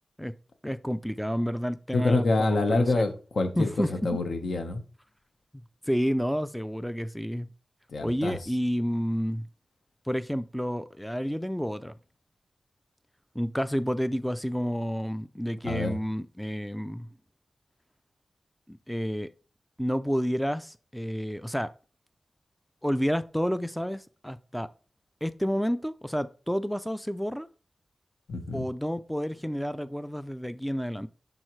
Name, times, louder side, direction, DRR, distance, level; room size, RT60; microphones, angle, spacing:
voice 1, 0.6-3.1 3.6-4.2 5.5-7.5 8.0-9.5 10.1-12.0 13.3-17.1 18.7-19.3 19.8-21.7 22.8-24.7 25.2-27.5 28.5-31.1, equal, ahead, 0.3 m, -30 dB
voice 2, 1.9-4.8 7.9-8.4 15.6-16.0 28.3-28.7, left 2 dB, 75° left, 1.1 m, -26 dB
11.0 x 3.9 x 3.1 m
wide cardioid pair, 105°, 0 cm